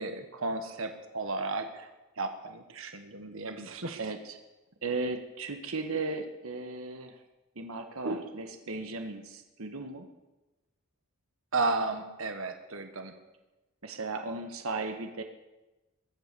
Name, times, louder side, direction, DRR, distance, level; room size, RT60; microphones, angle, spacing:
voice 1, 0.0-1.9 2.2-4.0 8.0-8.2 11.5-13.1, right 3 dB, 70° right, 6 dB, 1.4 m, -33 dB
voice 2, 4.0-4.4 4.8-7.2 7.5-10.1 13.8-15.2, right 3 dB, 90° right, 5 dB, 1.4 m, -36 dB
22.0 x 8.2 x 6.9 m, 1.1 s
head